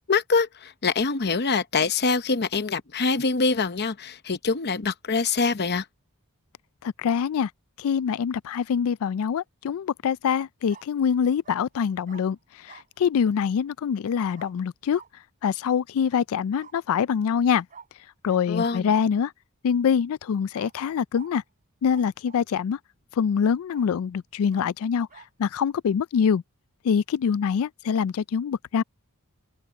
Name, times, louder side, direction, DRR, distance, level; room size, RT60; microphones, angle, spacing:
voice 1, 0.0-5.9 18.5-18.9, left 4 dB, 50° left, 0.8 m, -24 dB
voice 2, 6.8-7.5 7.8-12.4 12.7-15.0 15.4-17.6 18.2-19.3 19.6-21.4 21.8-22.8 23.2-25.1 25.4-26.4 26.8-28.8, left 7 dB, 65° left, 0.3 m, -24 dB
Bark, 9.0-9.4 10.7-10.9 11.4-11.6 12.0-12.2 12.7-12.9 14.3-14.5 14.9-15.1 16.5-16.8 17.7-17.9 18.2-18.4 20.5-20.7 21.1-21.3 21.9-22.5 23.0-23.1 23.7-23.9 24.5-24.7 25.1-25.3, right 6 dB, 40° right, 4.0 m, -49 dB
open air
head